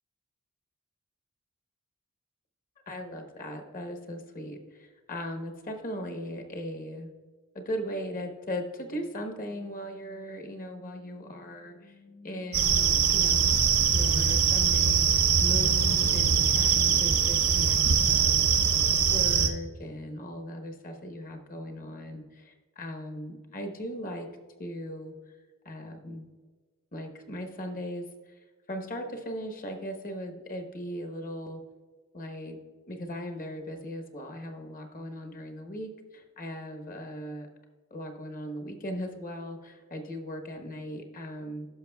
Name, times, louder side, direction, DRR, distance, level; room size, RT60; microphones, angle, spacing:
voice 1, 2.9-7.1 7.5-13.6 13.9-18.7 19.0-24.3 24.6-25.1 25.6-26.3 26.9-28.1 28.7-31.6 32.1-32.6 32.9-37.5 37.9-41.7, equal, 40° left, 4 dB, 1.1 m, -38 dB
sound 1, 12.5-19.5, right 7 dB, 75° right, 0.9 m, -23 dB
14.5 x 6.0 x 2.3 m, 1.4 s
head